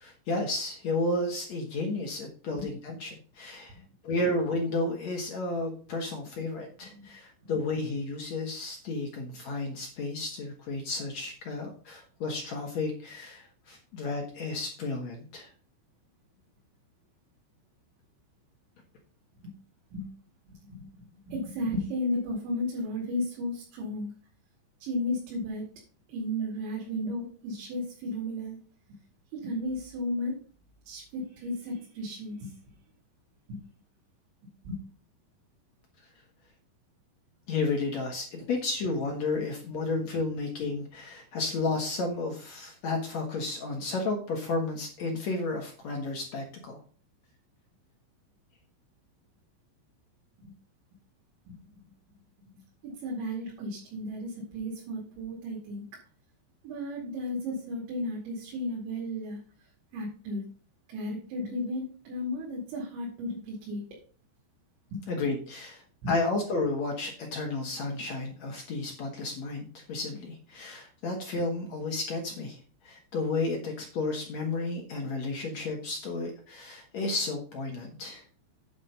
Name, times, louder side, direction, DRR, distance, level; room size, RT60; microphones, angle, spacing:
voice 1, 0.0-3.8 4.0-15.5 37.5-46.8 65.1-78.2, left 3 dB, 60° left, 1 dB, 1.9 m, -32 dB
voice 2, 20.4-24.1 24.8-25.6 26.1-28.6 29.3-30.3 30.9-32.5 33.5-33.6 34.6-34.8 50.4-50.5 51.5-51.6 52.8-55.9 56.6-59.4 59.9-60.5 60.9-63.8 64.9-65.0 66.0-66.1, left 1 dB, 90° right, -3 dB, 4.9 m, -34 dB
9.4 x 5.3 x 5.4 m, 0.40 s
omnidirectional pair, 5.1 m